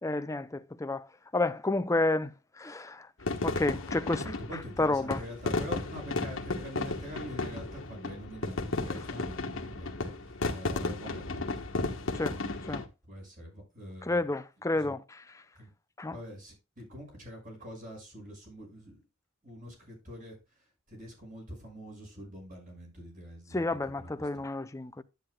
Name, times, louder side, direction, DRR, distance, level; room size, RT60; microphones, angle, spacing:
voice 1, 0.0-1.1 1.3-3.1 3.4-4.2 4.8-5.2 12.1-12.4 12.7-12.8 14.0-15.2 16.0-16.2 23.5-25.0, left 2 dB, 15° left, 0.5 m, -30 dB
sound 1, 3.2-12.9, left 3 dB, 65° left, 1.3 m, -34 dB
voice 2, 4.1-11.7 12.6-14.2 14.8-15.0 15.5-15.7 16.0-19.0 19.4-20.4 20.9-24.5, equal, 40° right, 6.5 m, -45 dB
11.0 x 9.3 x 2.3 m
head